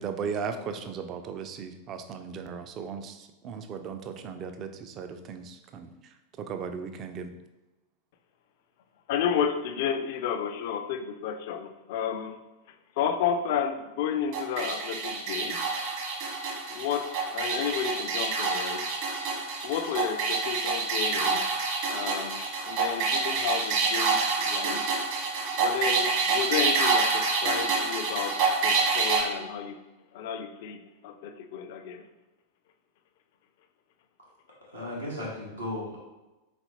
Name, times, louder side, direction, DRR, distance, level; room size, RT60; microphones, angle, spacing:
voice 1, 0.0-3.2 3.4-5.9 6.4-7.3, right 6 dB, 35° right, 7 dB, 0.4 m, -36 dB
voice 2, 9.1-12.4 13.0-15.6 16.7-18.9 19.6-21.5 21.9-24.8 25.5-29.8 30.1-32.0, left 8 dB, 50° left, 8 dB, 0.4 m, -32 dB
sound 1, 14.3-29.2, right 4 dB, 50° right, 1.2 m, -27 dB
voice 3, 34.7-36.0, left 1 dB, 85° right, -6 dB, 1.1 m, -35 dB
4.1 x 4.0 x 2.8 m, 1.1 s
figure-of-eight pair, 90°, 0 cm